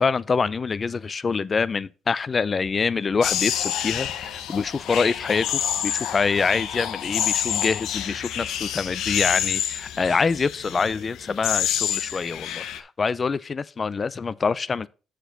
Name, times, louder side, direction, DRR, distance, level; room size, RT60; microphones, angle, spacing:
voice 1, 0.0-14.9, left 5 dB, 35° left, 0.4 m, -25 dB
sound 1, 3.2-12.8, left 10 dB, 85° left, 0.6 m, -28 dB
6.8 x 4.5 x 5.6 m
cardioid pair, 90°, 0 cm